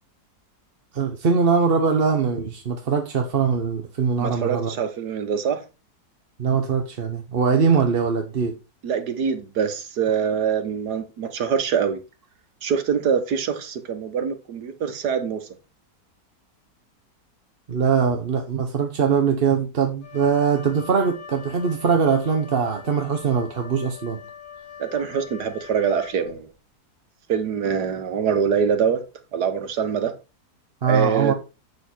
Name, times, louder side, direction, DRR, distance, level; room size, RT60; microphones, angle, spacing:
voice 1, 0.9-4.7 6.4-8.6 17.7-24.2 30.8-31.3, right 6 dB, 45° right, 1.0 m, -22 dB
voice 2, 4.2-5.6 7.7-7.8 8.8-12.0 12.6-15.5 24.8-26.5 27.3-29.0 29.3-30.1 30.8-31.3, right 7 dB, 85° right, 1.8 m, -24 dB
Wind instrument woodwind instrument, 20.0-26.6, left 7 dB, 60° left, 2.2 m, -42 dB
8.2 x 7.0 x 4.4 m
omnidirectional pair, 1.7 m